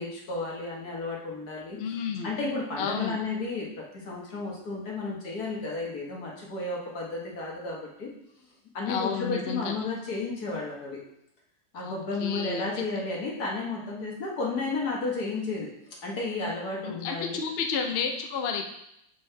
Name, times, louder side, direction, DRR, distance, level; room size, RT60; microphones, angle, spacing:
voice 1, 0.0-8.1 8.7-11.0 11.7-15.7 16.0-17.4, left 3 dB, 75° left, -3 dB, 1.9 m, -33 dB
voice 2, 1.8-2.3 2.8-3.2 8.9-9.7 11.8-12.7 16.8-18.6, left 6 dB, 55° left, 4 dB, 0.7 m, -31 dB
6.2 x 5.3 x 3.3 m, 0.77 s
omnidirectional pair, 1.7 m